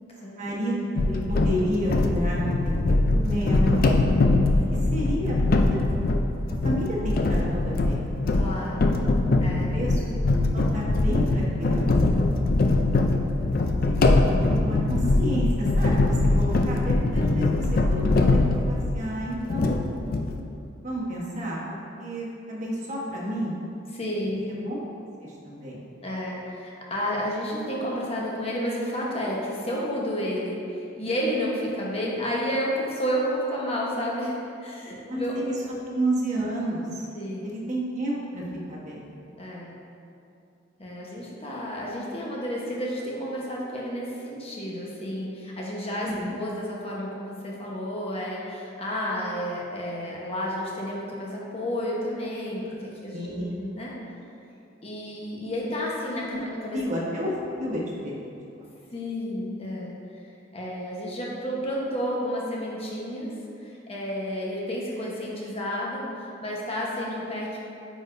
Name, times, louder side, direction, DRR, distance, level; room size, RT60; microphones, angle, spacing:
voice 1, 0.4-3.8 4.9-5.4 5.7-5.8 6.6-8.1 9.7-12.3 13.8-19.8 20.8-23.6 24.5-24.8 25.2-25.9 35.1-35.4 35.9-37.1 37.4-39.1 46.0-46.4 53.1-53.6 56.3-56.4 56.7-58.1 58.5-58.6, equal, 40° right, -5 dB, 1.2 m, -31 dB
sound 1, 1.0-19.1 19.5-20.4, left 2 dB, 50° left, 0.4 m, -22 dB
voice 2, 8.3-8.9 9.4-9.7 23.9-24.4 26.0-35.3 35.6-35.7 37.1-37.5 39.4-39.7 40.8-53.3 53.6-53.9 54.8-56.8 58.9-59.9 60.5-63.3 63.6-66.0 66.4-67.6, equal, 30° left, -4 dB, 1.1 m, -31 dB
8.9 x 5.0 x 2.6 m, 2.7 s
head